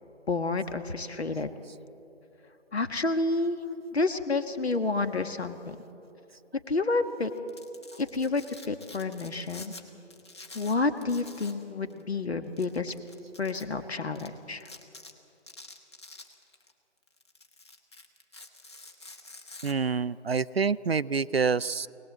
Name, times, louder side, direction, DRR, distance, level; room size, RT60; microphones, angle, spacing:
voice 1, 0.3-1.5 2.7-3.6 3.9-5.8 6.7-7.3 8.0-9.7 10.5-12.9 13.4-14.7, left 3 dB, 60° left, 9 dB, 1.6 m, -29 dB
Domestic sounds home sounds, 7.4-9.8 10.1-11.6 11.9-12.0 12.6-13.6 14.2-14.3 14.6-15.1 15.5-16.7 17.1-19.7, left 3 dB, 20° left, 1.2 m, -48 dB
voice 2, 19.6-21.9, right 5 dB, 55° right, 17 dB, 0.5 m, -27 dB
24.5 x 18.5 x 7.9 m, 2.9 s
figure-of-eight pair, 165°, 36 cm